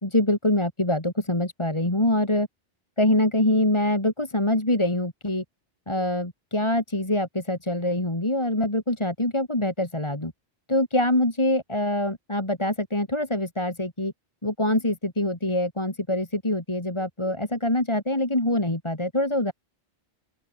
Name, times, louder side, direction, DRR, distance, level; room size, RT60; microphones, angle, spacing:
voice 1, 0.0-2.5 3.0-5.4 5.9-10.3 10.7-14.1 14.4-19.5, left 1 dB, 25° left, 3.2 m, -24 dB
open air
omnidirectional pair, 1.2 m